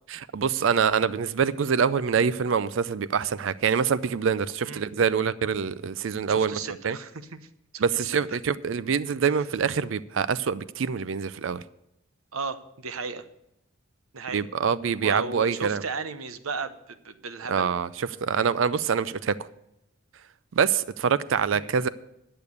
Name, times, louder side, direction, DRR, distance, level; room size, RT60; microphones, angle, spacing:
voice 1, 0.1-6.6 6.8-7.0 7.8-11.6 14.3-15.8 17.5-19.4 20.5-21.9, right 6 dB, 65° right, 17 dB, 0.4 m, -25 dB
voice 2, 6.3-7.1 7.7-8.4 12.3-13.2 14.1-14.4 15.0-17.7 21.5-21.7, right 4 dB, 85° right, 11 dB, 0.9 m, -35 dB
10.5 x 6.8 x 8.2 m, 0.83 s
head